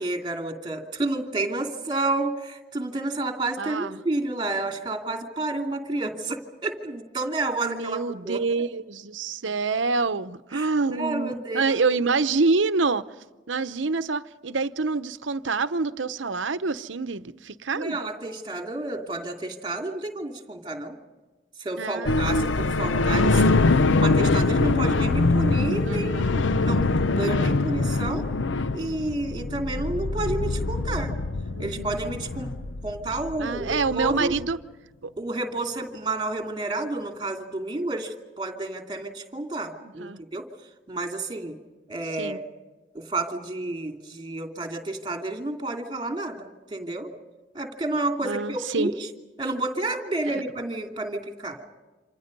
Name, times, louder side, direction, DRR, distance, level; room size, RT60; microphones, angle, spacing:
voice 1, 0.0-8.4 10.5-11.8 17.7-21.0 21.6-23.6 24.0-28.3 28.7-31.1 31.6-32.5 32.8-34.4 35.2-40.5 40.9-41.6 41.9-42.4 42.9-47.1 47.5-49.1 49.4-51.6, right 2 dB, 25° right, 2.7 m, -30 dB
voice 2, 3.6-4.0 7.6-13.0 13.5-18.0 21.8-22.1 25.9-26.3 31.5-32.0 33.4-34.6 35.0-35.1 39.8-40.2 42.2-42.4 48.2-48.9, right 4 dB, 80° right, 0.8 m, -27 dB
sound 1, 22.0-34.5, left 3 dB, 75° left, 0.7 m, -24 dB
28.0 x 27.0 x 5.4 m
head